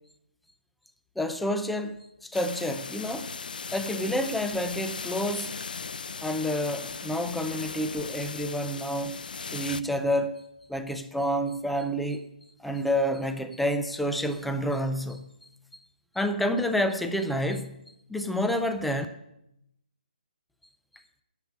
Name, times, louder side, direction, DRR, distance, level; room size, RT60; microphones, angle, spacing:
voice 1, 1.2-3.3 3.7-5.6 6.2-9.2 9.5-10.3 10.7-12.3 12.6-15.3 16.2-17.8 18.1-19.1, equal, ahead, 0.3 m, -29 dB
sound 1, 2.3-9.8, left 5 dB, 75° left, 0.5 m, -38 dB
10.5 x 7.1 x 8.3 m
hypercardioid pair, 175°, 5 cm